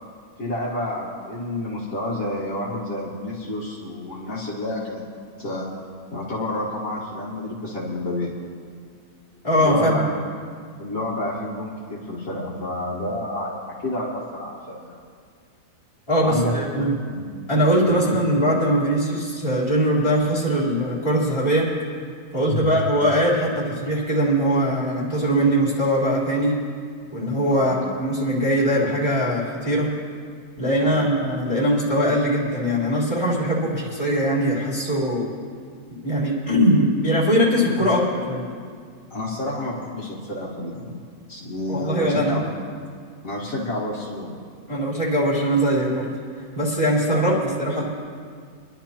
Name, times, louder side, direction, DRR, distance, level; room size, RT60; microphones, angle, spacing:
voice 1, 0.4-5.0 5.4-5.7 6.1-8.3 9.6-10.0 10.8-15.0 16.2-16.5 17.1-17.2 17.9-18.0 22.5-22.7 27.5-27.7 30.8-31.0 39.1-41.0 41.3-42.5 43.2-44.4 47.1-47.4, left 1 dB, 65° left, -6 dB, 2.1 m, -29 dB
voice 2, 9.4-10.1 16.1-16.9 17.5-21.7 22.3-26.6 27.1-29.9 30.6-35.3 36.0-38.4 41.7-42.5 44.7-46.1 46.5-47.8, equal, 20° left, -8 dB, 3.8 m, -21 dB
26.5 x 11.5 x 2.9 m, 2.1 s
omnidirectional pair, 1.6 m